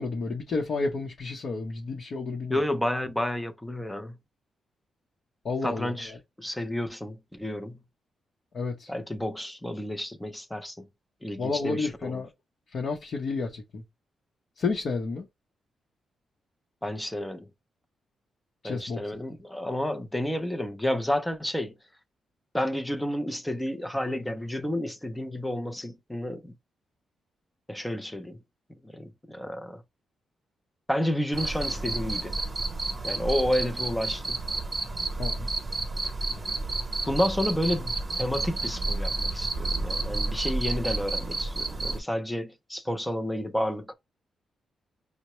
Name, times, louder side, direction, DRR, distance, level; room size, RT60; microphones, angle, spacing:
voice 1, 0.0-2.6 5.4-6.2 8.5-8.9 11.4-12.3 12.7-13.8 14.6-15.2 18.6-19.0 35.2-35.5, left 4 dB, 50° left, 0.8 m, -31 dB
voice 2, 2.5-4.2 5.6-7.8 8.9-10.9 11.2-12.2 16.8-17.5 18.6-21.7 22.5-26.6 27.7-28.4 28.8-29.8 30.9-32.4 33.0-34.4 37.1-43.9, left 1 dB, 5° left, 0.5 m, -30 dB
Cricket, 31.3-42.0, right 2 dB, 20° right, 0.8 m, -30 dB
5.4 x 2.1 x 3.0 m
cardioid pair, 135°, 0 cm